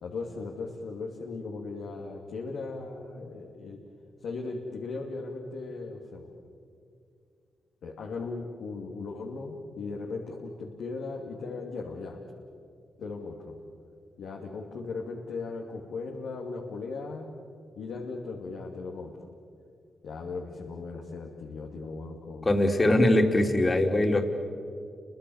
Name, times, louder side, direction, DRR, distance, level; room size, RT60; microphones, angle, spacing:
voice 1, 0.0-3.8 4.2-6.3 7.8-12.2 13.0-13.5 14.2-17.3 17.8-19.1 20.0-22.5 22.8-23.0, left 3 dB, 80° left, -1 dB, 2.9 m, -37 dB
voice 2, 22.4-24.3, left 1 dB, 30° left, 4 dB, 3.4 m, -22 dB
30.0 x 24.5 x 7.3 m, 2.3 s
supercardioid pair, 55°, 0 cm